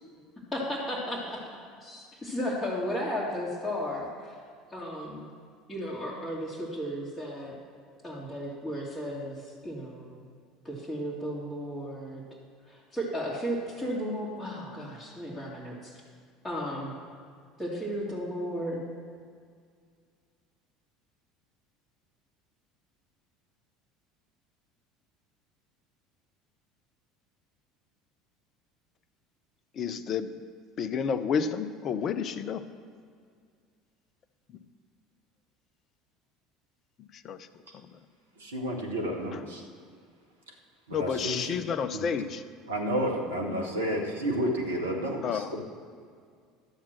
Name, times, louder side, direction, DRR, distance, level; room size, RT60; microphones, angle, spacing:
voice 1, 0.5-1.4 1.8-4.4 4.7-5.3 5.7-7.5 8.0-10.2 10.6-12.2 12.6-16.0 16.4-16.9 17.6-18.8, equal, 10° left, -8 dB, 2.3 m, -34 dB
voice 2, 29.7-30.3 30.8-32.6 37.0-37.5 37.7-38.0 39.3-39.4 40.9-42.4 45.2-45.5, left 6 dB, 40° left, 13 dB, 0.6 m, -31 dB
voice 3, 38.4-39.6 40.9-41.6 41.9-42.0 42.7-45.6, equal, 75° right, 2 dB, 1.5 m, -31 dB
12.0 x 7.3 x 6.0 m, 2.1 s
figure-of-eight pair, 65°, 0 cm